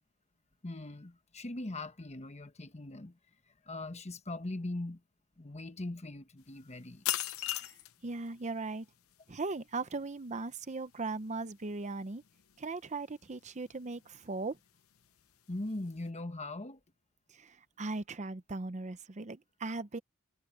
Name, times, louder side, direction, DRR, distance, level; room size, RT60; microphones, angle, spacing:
voice 1, 0.6-3.2 3.6-5.0 5.4-7.0 15.5-16.8, left 2 dB, 30° left, 1.2 m, -40 dB
sound 1, 6.4-16.1, left 13 dB, 70° left, 0.9 m, -43 dB
voice 2, 7.4-7.7 8.0-8.9 9.3-12.2 12.6-14.6 17.3-20.0, right 3 dB, 35° right, 0.7 m, -38 dB
head